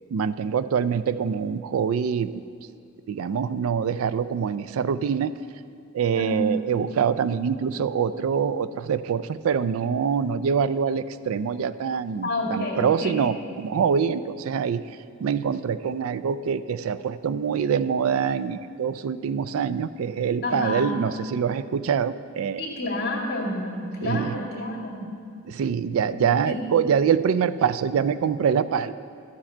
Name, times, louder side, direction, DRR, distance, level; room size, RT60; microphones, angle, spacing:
voice 1, 0.1-2.4 3.1-5.3 5.9-14.8 15.2-22.6 24.0-24.4 25.5-28.9, right 7 dB, 85° right, 14 dB, 0.3 m, -25 dB
voice 2, 6.2-6.6 12.2-13.3 20.4-21.0 22.6-25.1 26.5-26.6, left 1 dB, 50° left, -2 dB, 1.9 m, -29 dB
12.5 x 7.2 x 4.4 m, 2.3 s
head